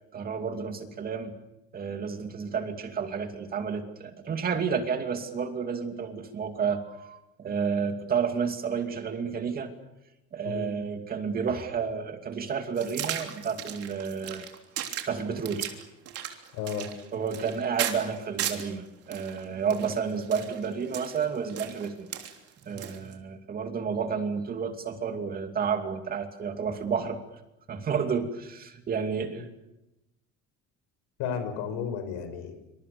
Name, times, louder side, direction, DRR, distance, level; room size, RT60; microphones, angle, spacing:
voice 1, 0.1-1.3 1.7-9.7 10.3-14.4 15.1-15.7 17.1-22.1 22.6-27.2 27.7-29.5, right 6 dB, 30° right, 6 dB, 2.6 m, -31 dB
sound 1, 12.8-18.7 19.1-23.1, right 10 dB, 50° right, 3.3 m, -36 dB
voice 2, 16.5-16.9 29.4-29.5 31.2-32.5, left 7 dB, 90° left, 8 dB, 6.3 m, -33 dB
27.0 x 26.0 x 6.9 m, 0.94 s
cardioid pair, 160°, 30 cm